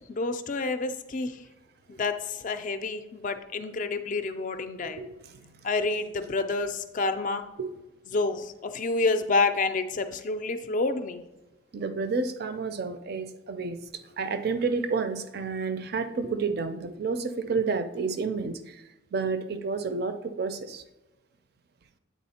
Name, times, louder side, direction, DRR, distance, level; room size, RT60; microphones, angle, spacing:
voice 1, 0.1-1.4 1.9-5.0 5.6-7.4 8.1-11.2, left 3 dB, 40° left, 9 dB, 0.4 m, -28 dB
voice 2, 4.8-5.4 7.6-7.7 11.7-13.8 14.2-18.8 19.1-20.8, right 4 dB, 50° right, 10 dB, 0.4 m, -30 dB
8.3 x 3.5 x 4.2 m, 1.0 s
head